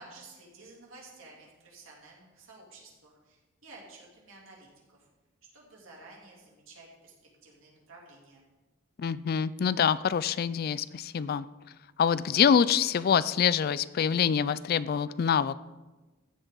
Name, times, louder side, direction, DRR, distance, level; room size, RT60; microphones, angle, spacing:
voice 1, 0.0-5.1 5.5-7.1 7.4-8.4, right 2 dB, 85° right, -3 dB, 3.0 m, -52 dB
voice 2, 9.0-11.5 12.0-15.6, left 7 dB, 50° left, 18 dB, 0.3 m, -25 dB
14.5 x 7.9 x 3.9 m, 1.2 s
head